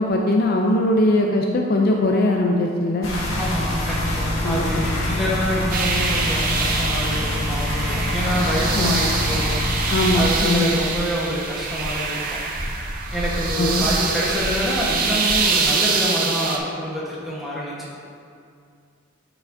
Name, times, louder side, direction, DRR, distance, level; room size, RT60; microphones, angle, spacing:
voice 1, 0.0-3.1 4.4-4.6 8.7-9.0 9.9-10.7 13.6-13.9, left 1 dB, 45° left, 1 dB, 0.4 m, -20 dB
sound 1, 3.0-10.2, left 1 dB, 75° left, 1.3 m, -25 dB
voice 2, 3.4-12.4 13.1-17.9, equal, ahead, -7 dB, 1.1 m, -27 dB
sound 2, 5.7-16.6, right 4 dB, 40° right, 0.5 m, -25 dB
sound 3, 9.7-15.7, equal, 20° right, 1.4 m, -33 dB
8.5 x 4.9 x 2.6 m, 2.4 s
head